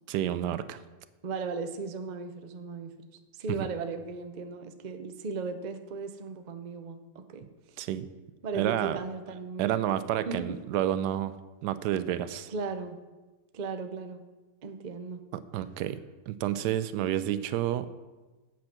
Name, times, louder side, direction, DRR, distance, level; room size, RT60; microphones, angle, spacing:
voice 1, 0.1-0.8 3.5-3.6 7.8-8.1 8.5-9.0 9.6-11.3 11.6-12.5 15.3-16.0 16.3-17.9, right 11 dB, 75° right, 13 dB, 1.1 m, -29 dB
voice 2, 1.2-3.0 3.3-7.8 8.4-9.8 10.2-10.6 12.5-13.0 13.5-14.2 14.6-15.2, right 4 dB, 60° right, 7 dB, 0.4 m, -36 dB
8.5 x 7.6 x 5.9 m, 1.2 s
omnidirectional pair, 1.9 m